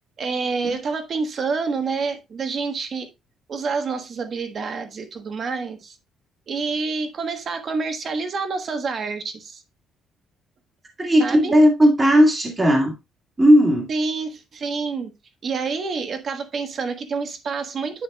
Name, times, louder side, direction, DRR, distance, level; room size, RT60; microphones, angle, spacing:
voice 1, 0.2-3.1 3.5-5.9 6.5-9.6 11.2-11.5 13.9-15.1 15.4-18.0, right 4 dB, 35° right, 1.3 m, -28 dB
voice 2, 11.0-12.9 13.4-13.9, equal, 15° right, 2.0 m, -16 dB
10.5 x 5.8 x 2.3 m
cardioid pair, 160°, 0 cm